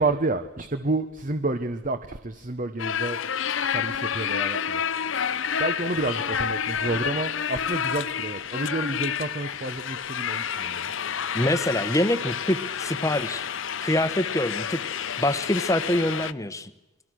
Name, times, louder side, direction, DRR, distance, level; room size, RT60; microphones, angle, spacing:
voice 1, 0.0-3.3 3.6-5.3 5.6-10.9, right 2 dB, 40° right, 9 dB, 1.1 m, -30 dB
sound 1, 2.8-16.3, left 8 dB, 65° left, 0.8 m, -29 dB
voice 2, 11.3-13.4 13.8-14.8 15.2-16.7, left 1 dB, 15° left, 12 dB, 1.2 m, -25 dB
29.0 x 22.5 x 6.4 m, 1.0 s
head